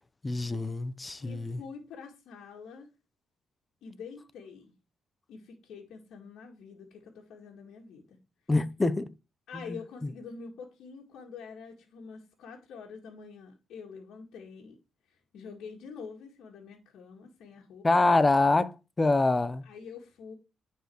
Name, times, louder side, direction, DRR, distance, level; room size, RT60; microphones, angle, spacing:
voice 1, 0.2-1.6 8.5-9.1 9.7-9.8 17.8-19.6, left 2 dB, 20° left, 0.8 m, -25 dB
voice 2, 1.2-2.9 3.8-4.7 5.3-8.2 9.5-14.8 15.1-18.1 19.6-20.3, left 5 dB, 80° left, 1.9 m, -46 dB
10.0 x 4.7 x 4.6 m
cardioid pair, 90°, 0 cm